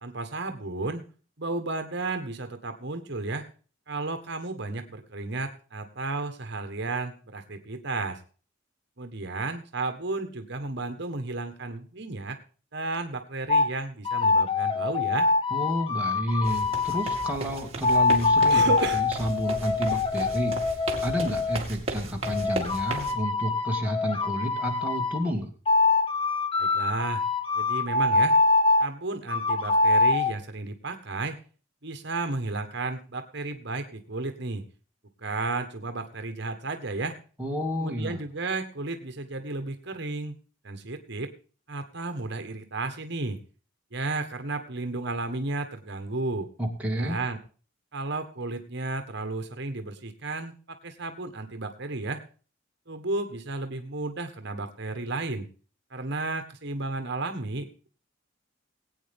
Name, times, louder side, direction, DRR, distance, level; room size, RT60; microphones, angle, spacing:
voice 1, 0.0-1.0 1.4-3.4 3.9-8.2 9.0-12.4 12.7-15.3 18.5-19.0 26.6-27.2 27.5-28.3 28.8-31.4 31.8-34.6 35.2-37.2 37.8-40.3 40.6-41.3 41.7-43.4 43.9-46.5 47.0-47.4 47.9-52.2 52.9-55.5 55.9-57.9, right 3 dB, 55° right, 7 dB, 1.4 m, -33 dB
sound 1, 13.5-13.7 14.1-17.4 17.8-21.6 22.2-25.2 25.7-28.9 29.3-30.3, left 3 dB, 25° left, 1.0 m, -24 dB
voice 2, 15.5-20.6 21.0-25.5 37.4-38.2 46.6-47.2, equal, 10° right, -1 dB, 2.3 m, -30 dB
sound 2, 16.4-23.1, right 2 dB, 30° right, 2.4 m, -36 dB
20.0 x 8.9 x 3.6 m, 0.39 s
head